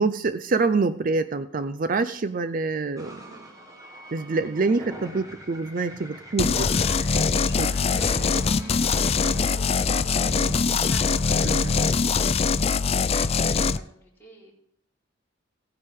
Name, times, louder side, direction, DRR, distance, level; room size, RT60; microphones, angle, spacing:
voice 1, 0.0-3.2 4.1-6.7 7.6-7.7 10.4-10.9 11.4-11.9, right 3 dB, 45° right, 12 dB, 0.5 m, -26 dB
sound 1, 3.0-13.8, equal, 20° right, 1.9 m, -44 dB
voice 2, 3.2-3.5 8.0-8.1 8.5-9.7 10.0-12.4 12.8-13.3 13.7-14.5, right 1 dB, 10° left, -5 dB, 4.3 m, -47 dB
sound 2, 6.4-13.8, left 5 dB, 30° left, 0.4 m, -22 dB
17.0 x 9.7 x 3.7 m, 0.67 s
head